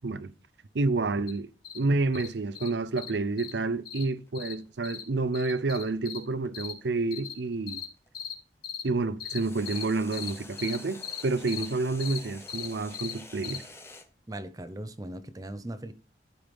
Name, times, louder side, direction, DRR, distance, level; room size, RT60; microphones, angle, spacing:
voice 1, 0.7-1.5 1.7-7.8 8.8-13.6, right 3 dB, 80° right, 0.7 m, -29 dB
sound 1, 1.3-1.4 1.6-1.8 2.1-2.3 2.5-2.7 3.0-3.1 3.4-3.5 3.8-4.0 4.3-4.5 4.8-5.0 5.3-6.2 6.5-6.7 7.1-7.3 7.7-7.8 8.1-8.3 8.6-8.8 9.2-9.4 9.7-9.8 10.1-10.3 10.6-10.8 11.0-11.2 11.5-11.7 12.0-12.2 12.5-12.7 12.9-13.1 13.4-13.6, left 8 dB, 60° left, 2.5 m, -37 dB
sound 2, 3.0-8.2 9.3-14.1, left 2 dB, 15° left, 1.0 m, -49 dB
voice 2, 14.3-15.9, right 1 dB, 20° right, 0.7 m, -39 dB
12.5 x 4.7 x 5.3 m
head